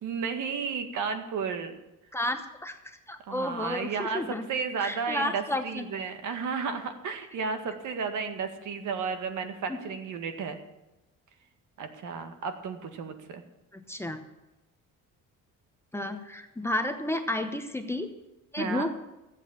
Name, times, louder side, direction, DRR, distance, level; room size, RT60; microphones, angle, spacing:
voice 1, 0.0-1.8 3.3-4.2 4.5-10.6 11.8-13.4 18.6-18.9, right 5 dB, 60° right, 7 dB, 1.9 m, -33 dB
voice 2, 2.1-4.5 4.8-5.9 9.7-9.8 13.7-14.2 15.9-18.1 18.5-19.0, left 1 dB, 5° left, 5 dB, 0.9 m, -32 dB
14.5 x 8.3 x 7.4 m, 0.99 s
cardioid pair, 140°, 34 cm